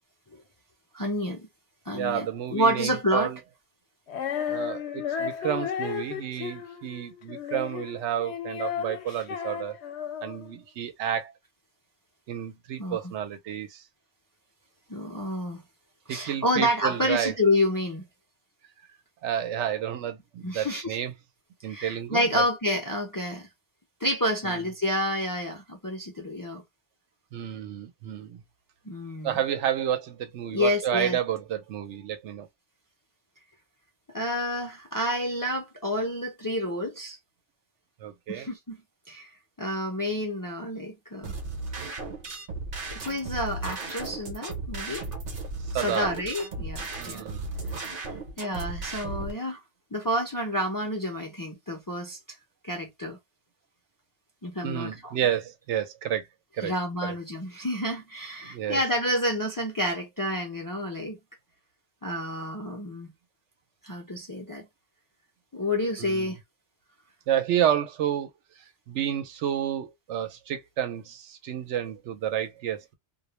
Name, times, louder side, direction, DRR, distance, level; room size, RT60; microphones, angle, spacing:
voice 1, 0.9-1.5 1.9-3.3 12.8-13.1 14.9-15.6 16.1-18.1 20.4-21.0 21.7-23.5 24.0-26.6 28.9-29.4 30.5-31.2 34.1-37.2 38.3-38.8 39.1-39.3 39.6-41.3 42.9-45.0 45.8-47.2 47.8-49.6 49.9-52.2 52.6-53.2 54.4-55.1 56.6-61.2 62.0-63.1 63.8-64.7 65.5-66.4, equal, 30° left, 0.4 m, -29 dB
voice 2, 1.9-3.4 4.5-9.8 10.2-11.3 12.3-13.8 16.1-17.3 19.2-21.1 21.6-22.4 24.4-24.7 27.3-28.4 29.2-32.5 38.0-38.5 45.7-46.1 47.0-47.5 54.6-56.3 56.5-56.7 57.0-57.2 58.5-58.8 66.0-66.4 67.3-68.3 68.9-72.9, right 10 dB, 90° right, 0.9 m, -30 dB
Female singing, 4.1-10.5, left 8 dB, 75° left, 0.8 m, -34 dB
sound 1, 41.2-49.3, right 3 dB, 55° right, 0.8 m, -35 dB
2.3 x 2.0 x 2.9 m
omnidirectional pair, 1.2 m